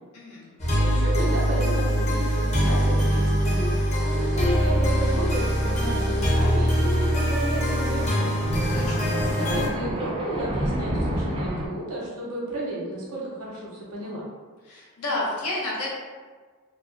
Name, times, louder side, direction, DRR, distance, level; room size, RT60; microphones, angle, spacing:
voice 1, 0.1-0.5 8.7-9.1 14.6-15.9, left 2 dB, 90° left, -5 dB, 0.8 m, -31 dB
sound 1, 0.6-9.7, equal, 30° left, 0.6 m, -23 dB
voice 2, 0.8-3.7 4.1-8.3 9.3-14.3, right 1 dB, 85° right, -4 dB, 0.8 m, -32 dB
Thunder, 3.6-4.0 4.3-4.4 5.4-11.7, right 1 dB, 25° right, 0.3 m, -31 dB
2.3 x 2.1 x 2.5 m, 1.4 s
head